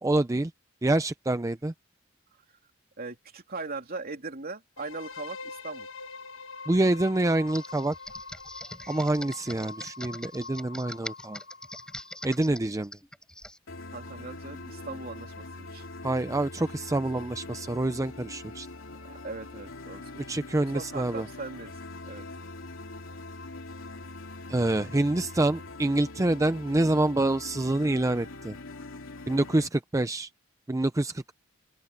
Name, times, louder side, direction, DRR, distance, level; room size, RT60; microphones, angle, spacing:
voice 1, 0.0-0.5 0.8-1.7 6.7-7.9 8.9-11.4 12.2-12.9 16.0-18.7 20.3-21.3 24.5-28.5 29.3-30.3 30.7-31.3, right 2 dB, 15° right, 0.5 m, -26 dB
voice 2, 3.0-5.9 13.9-15.8 19.0-20.2 20.7-21.7 22.1-22.2, right 3 dB, 50° right, 3.2 m, -39 dB
sound 1, 4.8-12.6, left 4 dB, 75° left, 1.6 m, -44 dB
Computer keyboard, 7.5-13.6, left 1 dB, 5° left, 4.7 m, -43 dB
sound 2, 13.7-29.7, left 2 dB, 90° left, 2.6 m, -43 dB
open air
head